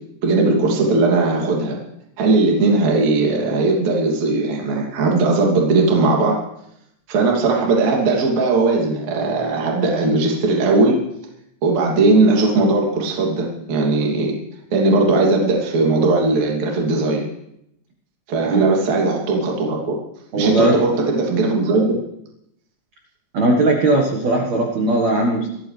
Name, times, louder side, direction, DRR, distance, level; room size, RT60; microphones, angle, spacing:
voice 1, 0.2-1.8 2.2-6.4 7.1-11.0 11.6-14.3 14.7-17.2 18.3-20.0 20.3-22.0, right 3 dB, 40° right, -1 dB, 3.5 m, -18 dB
voice 2, 20.3-20.7 23.3-25.5, right 2 dB, 80° right, 0 dB, 1.5 m, -18 dB
26.5 x 14.0 x 3.4 m, 0.76 s
omnidirectional pair, 5.9 m